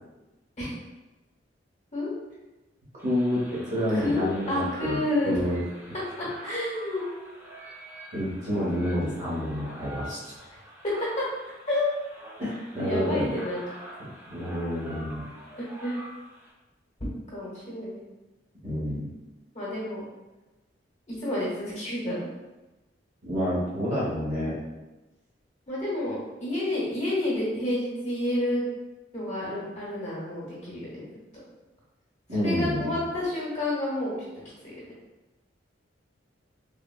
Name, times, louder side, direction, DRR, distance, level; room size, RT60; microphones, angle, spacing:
sound 1, 3.0-16.5, equal, 15° right, 0.4 m, -46 dB
voice 1, 3.0-5.0 5.2-5.6 8.1-10.3 12.4-13.3 14.0-15.2 18.6-19.0 23.2-24.5 32.3-33.0, equal, 40° right, -7 dB, 1.0 m, -29 dB
voice 2, 3.9-5.4 6.4-7.0 10.5-10.6 11.7-11.9 12.8-13.6 15.6-16.0 17.3-18.0 19.5-20.0 21.1-22.3 25.7-28.6 29.1-31.1 32.4-34.3 34.6-34.7, left 1 dB, 40° left, -6 dB, 1.0 m, -29 dB
3.4 x 2.1 x 2.2 m, 1.1 s
head